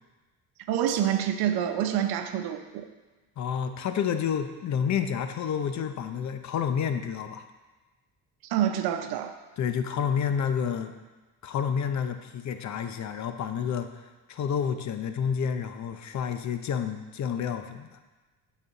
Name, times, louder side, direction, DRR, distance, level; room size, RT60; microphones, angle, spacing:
voice 1, 0.6-2.9 8.5-9.3, right 10 dB, 85° right, 8 dB, 0.8 m, -27 dB
voice 2, 3.4-7.4 9.6-10.9 11.4-17.9, left 7 dB, 50° left, 8 dB, 0.8 m, -29 dB
12.0 x 4.2 x 4.0 m, 1.2 s
cardioid pair, 100°, 36 cm